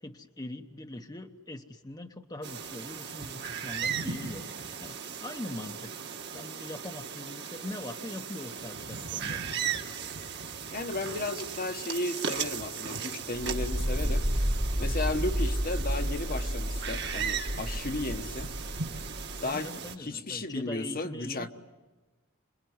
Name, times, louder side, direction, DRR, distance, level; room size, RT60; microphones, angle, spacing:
voice 1, 0.0-9.4 19.4-21.5, left 1 dB, 20° left, 0.9 m, -42 dB
sound 1, 2.4-19.9, right 7 dB, 55° right, 1.7 m, -37 dB
voice 2, 10.7-14.3 14.8-18.5 19.4-19.7 20.0-21.5, left 2 dB, 45° left, 1.1 m, -34 dB
sound 2, 13.3-19.4, equal, 10° right, 0.9 m, -31 dB
27.0 x 21.5 x 9.5 m
head